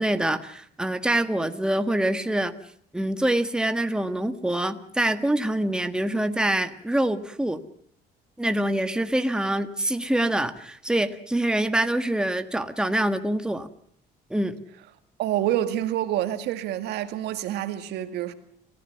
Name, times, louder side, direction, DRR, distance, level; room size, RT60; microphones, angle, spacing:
voice 1, 0.0-2.5 2.9-7.6 8.4-13.7 14.3-14.6, right 1 dB, 5° right, 1.6 m, -25 dB
voice 2, 15.2-18.3, right 12 dB, 80° right, 2.1 m, -27 dB
29.5 x 15.5 x 6.9 m
cardioid pair, 110°, 17 cm